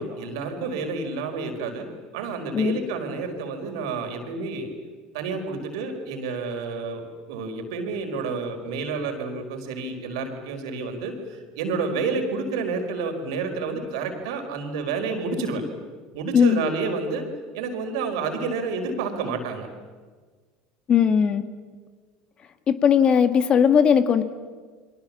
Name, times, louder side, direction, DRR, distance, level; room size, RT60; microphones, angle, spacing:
voice 1, 0.0-1.9 2.1-4.7 5.1-15.6 16.1-17.2 17.5-19.7, right 4 dB, 75° right, 5 dB, 4.5 m, -29 dB
voice 2, 16.3-16.6 20.9-21.4 22.7-24.2, left 7 dB, 40° left, 10 dB, 1.9 m, -18 dB
29.5 x 23.5 x 7.4 m, 1.5 s
hypercardioid pair, 85°, 3 cm